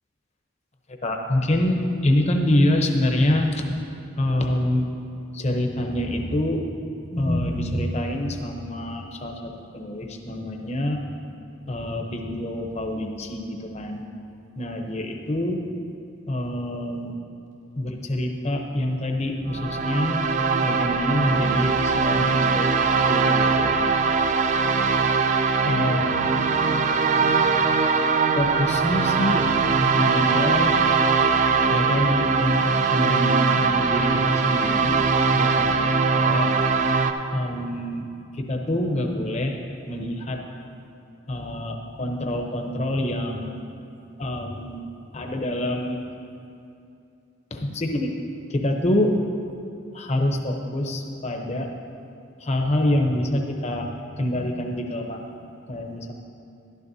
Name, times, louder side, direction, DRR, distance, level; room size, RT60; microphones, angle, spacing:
voice 1, 1.0-3.6 4.2-4.9 5.3-6.6 7.1-11.0 11.7-14.0 14.6-15.6 16.3-17.2 17.8-20.2 20.6-22.7 23.0-23.8 25.7-26.6 28.4-29.5 29.8-30.8 31.7-35.0 35.3-36.5 37.3-38.1 38.3-39.6 39.9-40.4 41.3-43.7 44.2-44.8 45.1-46.0 47.5-48.1 48.5-49.2 49.9-51.7 52.4-53.9 54.2-55.2 55.7-56.1, left 1 dB, 35° left, 3 dB, 0.8 m, -26 dB
sound 1, 19.4-37.1, right 4 dB, 40° right, 0.4 m, -21 dB
12.0 x 11.5 x 2.7 m, 2.6 s
head